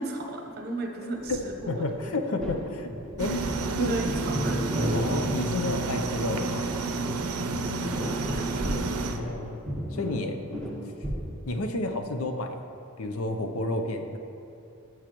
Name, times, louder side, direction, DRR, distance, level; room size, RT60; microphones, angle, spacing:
voice 1, 0.0-2.1 3.8-4.6 8.0-8.7, right 1 dB, 45° right, 3 dB, 0.9 m, -35 dB
sound 1, 1.3-1.6 1.9-2.0 2.4-2.6 2.9-3.7 4.0-5.3 5.6-5.8 6.2-6.3 6.6-6.7 7.0-9.4 9.6-11.3, equal, 5° left, 1.3 m, -32 dB
voice 2, 1.7-2.9 3.2-3.5 3.8-4.0 4.9-6.7 9.1-9.6 9.9-10.5 11.5-12.6 13.0-14.2, left 2 dB, 75° left, 6 dB, 0.6 m, -30 dB
sound 2, 3.2-9.2, right 3 dB, 90° right, 0.6 m, -30 dB
13.0 x 6.3 x 3.0 m, 2.7 s
head